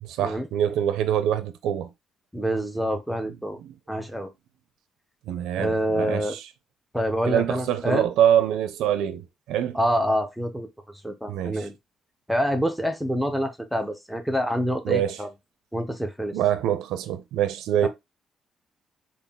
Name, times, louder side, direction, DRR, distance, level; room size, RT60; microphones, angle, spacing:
voice 1, 0.0-1.9 3.6-3.8 5.3-6.5 7.3-9.8 11.3-11.7 14.8-15.2 16.3-17.9, right 10 dB, 90° right, 0.5 m, -25 dB
voice 2, 2.3-3.6 3.9-4.3 5.6-6.4 6.9-8.1 9.7-10.7 11.0-11.7 12.3-15.3 15.7-16.4 17.8-17.9, equal, ahead, 0.7 m, -26 dB
3.9 x 2.3 x 3.5 m
cardioid pair, 90°, 0 cm